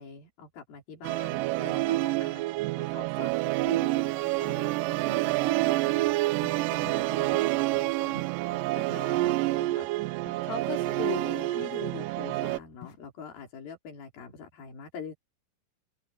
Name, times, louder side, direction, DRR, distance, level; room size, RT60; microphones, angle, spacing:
voice 1, 0.0-2.4 2.8-6.1 6.6-9.9 10.4-15.1, left 6 dB, 85° left, 5.8 m, -43 dB
Musical instrument, 1.0-12.6, right 19 dB, 80° right, 2.1 m, -28 dB
sound 1, 4.2-4.3 4.6-4.9 5.2-5.4 5.7-5.8 6.4-6.6 6.9-7.1 7.3-7.5 7.8-7.9 8.2-9.4 9.7-9.8 10.3-10.4 11.1-11.2 11.6-11.8 12.3-12.4 12.8-13.0, left 15 dB, 55° left, 1.7 m, -50 dB
open air
omnidirectional pair, 4.1 m